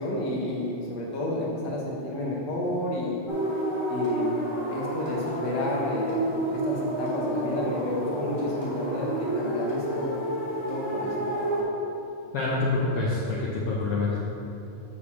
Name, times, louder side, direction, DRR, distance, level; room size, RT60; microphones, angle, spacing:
voice 1, 0.0-3.2 3.9-4.3 4.6-6.2 6.5-10.2 10.7-11.3, left 1 dB, 55° left, -3 dB, 1.2 m, -31 dB
sound 1, 3.3-11.6, right 1 dB, 35° left, 0.8 m, -30 dB
voice 2, 12.3-14.2, left 3 dB, 80° left, -5 dB, 1.3 m, -26 dB
6.5 x 5.0 x 7.0 m, 2.8 s
omnidirectional pair, 3.8 m